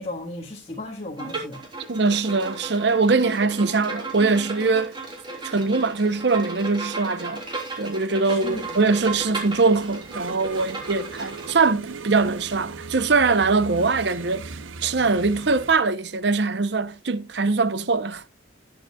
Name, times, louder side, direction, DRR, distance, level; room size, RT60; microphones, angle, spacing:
voice 1, 0.0-1.6 8.2-8.6, left 2 dB, 30° left, 1.5 m, -35 dB
Bowed string instrument, 1.2-11.7, right 3 dB, 25° right, 3.3 m, -35 dB
voice 2, 1.9-5.0 5.4-7.4 7.8-14.5 14.8-18.2, right 4 dB, 60° right, 0.8 m, -22 dB
sound 1, 8.4-15.7, right 4 dB, 90° right, 0.9 m, -39 dB
19.0 x 7.9 x 2.3 m
head